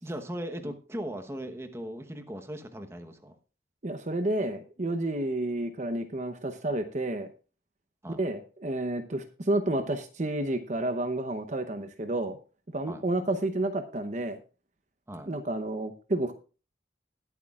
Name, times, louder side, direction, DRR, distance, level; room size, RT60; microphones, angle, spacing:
voice 1, 0.0-3.3 8.0-8.2 12.8-13.0 15.1-15.3, equal, 15° right, 6 dB, 1.0 m, -38 dB
voice 2, 3.8-7.3 8.2-12.4 12.7-14.4 15.3-16.3, right 1 dB, 40° right, 8 dB, 0.8 m, -30 dB
20.0 x 8.2 x 2.4 m, 0.36 s
head